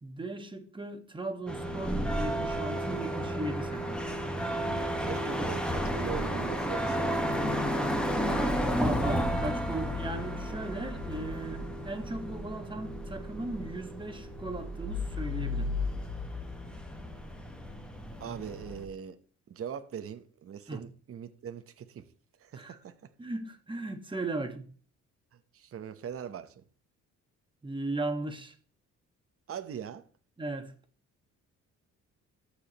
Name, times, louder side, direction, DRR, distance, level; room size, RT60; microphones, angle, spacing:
voice 1, 0.0-4.0 8.2-15.7 20.7-20.8 22.5-22.8 23.2-24.7 27.6-28.5 30.4-30.7, right 2 dB, 15° right, 1.4 m, -37 dB
sound 1, 1.5-18.8, equal, 5° left, 1.3 m, -32 dB
voice 2, 5.0-7.2 18.2-19.2 19.5-22.1 22.4-22.9 25.5-26.6 29.5-30.0, right 8 dB, 50° right, 0.9 m, -41 dB
14.0 x 4.9 x 2.9 m
cardioid pair, 90°, 30 cm